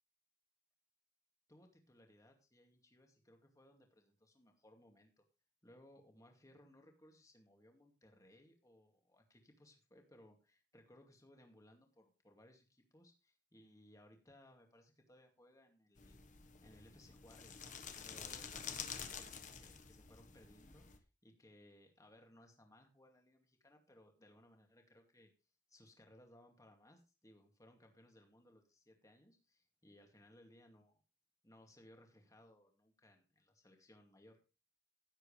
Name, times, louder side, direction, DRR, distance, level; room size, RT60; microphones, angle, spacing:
voice 1, 1.5-5.2 5.6-16.2 16.6-17.7 18.0-20.9 21.2-25.3 25.7-31.0 31.4-34.4, left 1 dB, 20° left, 3 dB, 2.3 m, -64 dB
sound 1, 16.0-21.0, left 7 dB, 45° left, 1.3 m, -49 dB
16.0 x 7.8 x 3.3 m, 0.31 s
head